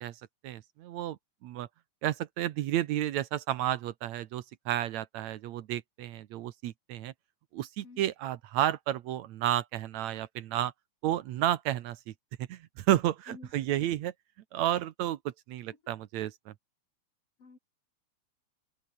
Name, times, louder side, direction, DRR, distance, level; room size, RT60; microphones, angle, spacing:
voice 1, 0.0-1.7 2.0-7.1 7.5-10.7 11.0-12.1 12.4-14.1 14.5-16.5, right 12 dB, 75° right, 2.2 m, -32 dB
voice 2, 13.3-13.7 17.4-17.6, left 4 dB, 50° left, 5.7 m, -51 dB
open air
omnidirectional pair, 3.4 m